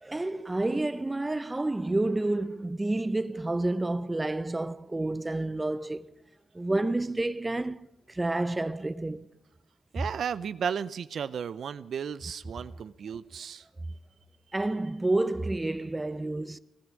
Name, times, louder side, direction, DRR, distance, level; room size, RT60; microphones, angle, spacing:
voice 1, 0.0-6.0 6.5-9.3 14.5-16.6, right 2 dB, 15° right, 0.7 m, -29 dB
voice 2, 9.9-13.7, right 7 dB, 65° right, 0.5 m, -34 dB
18.0 x 12.5 x 6.3 m
cardioid pair, 90°, 0 cm